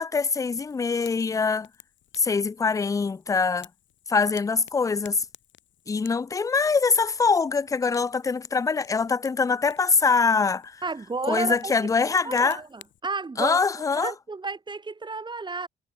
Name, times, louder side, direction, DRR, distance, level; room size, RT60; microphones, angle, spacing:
voice 1, 0.0-1.7 2.2-3.7 4.1-5.2 5.9-10.8 11.3-12.6 13.4-14.1, left 5 dB, 15° left, 0.3 m, -23 dB
Fire, 0.6-13.0, left 11 dB, 70° left, 3.1 m, -54 dB
voice 2, 10.8-11.7 12.1-13.6 13.9-15.7, right 3 dB, 25° right, 1.5 m, -32 dB
cardioid pair, 90°, 20 cm